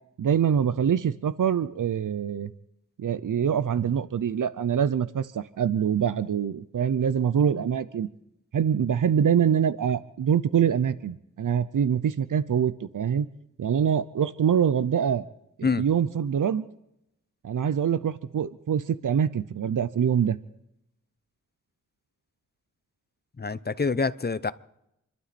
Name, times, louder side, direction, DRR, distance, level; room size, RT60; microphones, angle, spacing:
voice 1, 0.2-2.5 3.0-8.1 8.5-13.3 13.6-15.2 15.6-16.7 17.4-20.4, right 8 dB, 80° right, 0.7 m, -24 dB
voice 2, 23.4-24.5, left 4 dB, 30° left, 0.8 m, -26 dB
28.0 x 12.5 x 4.3 m
cardioid pair, 55°, 31 cm